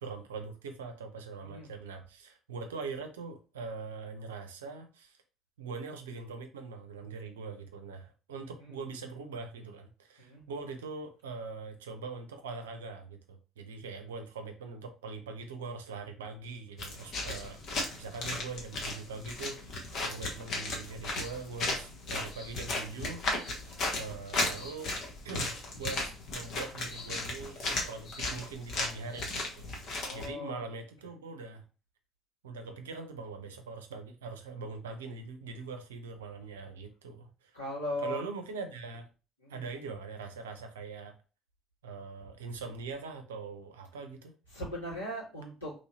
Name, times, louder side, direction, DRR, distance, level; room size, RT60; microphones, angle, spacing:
voice 1, 0.0-5.2 5.6-23.5 23.9-24.9 25.2-29.7 30.1-31.6 32.4-37.6 38.0-39.1 39.5-41.2 41.8-44.3, right 4 dB, 75° right, 6 dB, 0.5 m, -42 dB
sound 1, 16.8-30.2, left 2 dB, 50° left, 0.9 m, -35 dB
voice 2, 30.0-30.6 37.5-38.2 39.4-39.6 44.5-45.7, left 1 dB, 80° left, -8 dB, 1.6 m, -38 dB
3.0 x 2.7 x 2.8 m, 0.34 s
figure-of-eight pair, 55°, 0 cm